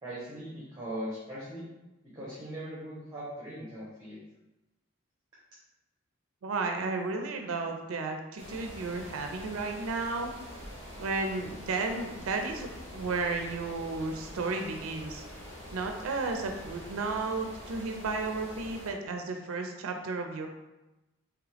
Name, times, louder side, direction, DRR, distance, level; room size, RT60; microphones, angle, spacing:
voice 1, 0.0-1.7 2.0-4.2, equal, 20° right, -8 dB, 0.9 m, -40 dB
voice 2, 6.4-10.3 11.0-15.2 15.7-20.5, right 3 dB, 85° right, 4 dB, 0.4 m, -33 dB
sound 1, 8.4-18.9, equal, 60° left, 1.2 m, -45 dB
3.6 x 3.2 x 3.3 m, 1.0 s
head